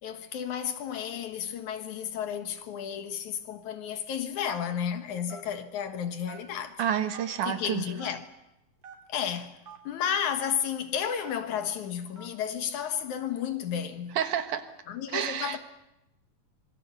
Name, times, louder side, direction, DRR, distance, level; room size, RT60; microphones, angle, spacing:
voice 1, 0.0-6.8 7.4-8.3 9.1-9.6 9.8-14.2 14.9-15.6, left 8 dB, 70° left, 2.8 m, -32 dB
Telephone, 4.5-4.8 5.3-5.5 6.3-6.7 7.1-7.3 8.0-8.2 8.8-9.0 9.6-9.8 10.4-10.5 11.2-11.5 12.2-12.3, right 5 dB, 45° right, 4.1 m, -46 dB
voice 2, 6.8-7.8 14.2-14.6 15.1-15.6, right 9 dB, 75° right, 2.9 m, -29 dB
26.0 x 21.5 x 6.8 m
omnidirectional pair, 3.6 m